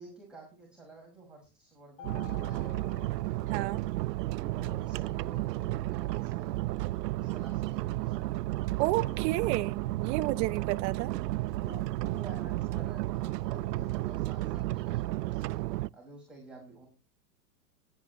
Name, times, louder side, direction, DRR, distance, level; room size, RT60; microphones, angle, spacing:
voice 1, 0.0-3.2 4.6-6.7 7.1-8.5 11.6-16.9, right 2 dB, ahead, 5.1 m, -51 dB
Mallet percussion, 2.0-4.2, left 14 dB, 45° left, 2.4 m, -51 dB
sound 1, 2.0-15.9, right 17 dB, 75° right, 0.5 m, -33 dB
voice 2, 3.5-3.8 8.8-11.1, right 18 dB, 40° right, 1.0 m, -31 dB
17.0 x 9.4 x 3.0 m
hypercardioid pair, 120°, 50 cm